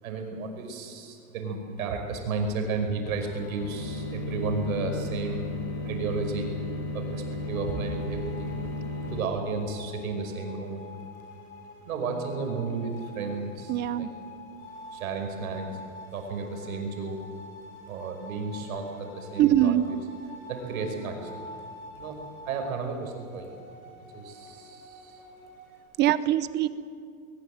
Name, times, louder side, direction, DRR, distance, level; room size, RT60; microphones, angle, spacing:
voice 1, 0.0-5.5 5.8-6.6 6.9-8.6 9.1-10.9 11.8-14.1 14.9-15.7 16.1-17.2 17.9-19.7 20.5-21.4 21.9-22.2 22.4-23.6 24.1-25.2, right 4 dB, 80° right, 4 dB, 5.5 m, -33 dB
sound 1, 3.0-9.2, left 2 dB, 40° left, 5.9 m, -35 dB
sound 2, 7.4-25.8, left 2 dB, 75° left, 7.2 m, -47 dB
voice 2, 13.7-14.1 19.4-19.8 26.0-26.7, right 12 dB, 25° right, 15 dB, 0.7 m, -22 dB
21.5 x 20.0 x 7.9 m, 2.4 s
supercardioid pair, 150°, 41 cm